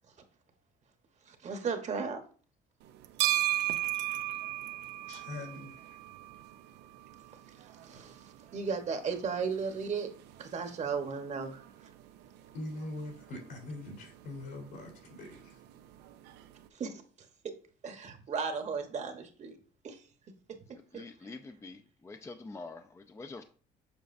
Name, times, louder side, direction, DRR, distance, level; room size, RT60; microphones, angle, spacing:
voice 1, 1.3-2.2 7.8-8.2 8.5-10.1 10.4-11.6 16.7-17.0 17.4-17.5 17.8-19.6 19.8-20.0 20.9-21.0, right 5 dB, 45° right, 1.1 m, -35 dB
sound 1, 2.8-16.7, right 15 dB, 85° right, 0.5 m, -38 dB
voice 2, 5.1-6.0 12.5-15.6, left 2 dB, 80° left, 3.4 m, -42 dB
voice 3, 20.7-23.4, left 3 dB, 15° left, 0.5 m, -46 dB
7.2 x 5.1 x 2.6 m
cardioid pair, 110°, 17 cm